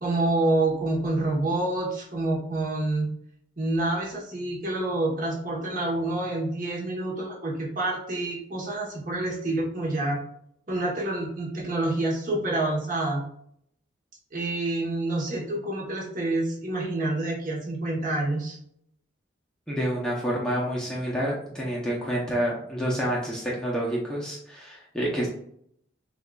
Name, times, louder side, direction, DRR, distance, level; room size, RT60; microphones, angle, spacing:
voice 1, 0.0-3.1 3.6-10.2 10.7-13.2 14.3-18.6, right 2 dB, 40° right, -3 dB, 1.1 m, -27 dB
voice 2, 19.7-25.3, equal, 5° left, -5 dB, 0.7 m, -28 dB
6.7 x 2.5 x 2.3 m, 0.70 s
head